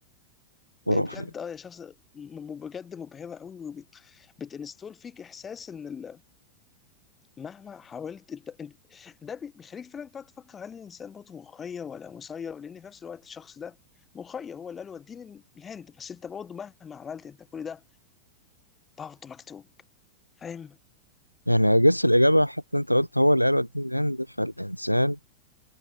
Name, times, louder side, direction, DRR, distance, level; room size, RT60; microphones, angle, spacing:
voice 1, 0.9-6.2 7.4-13.8 14.1-17.8 19.0-19.7 20.4-20.8, left 7 dB, 20° left, 4.4 m, -40 dB
voice 2, 21.5-25.2, equal, 90° left, 0.7 m, -22 dB
figure-of-eight pair, 90°, 0 cm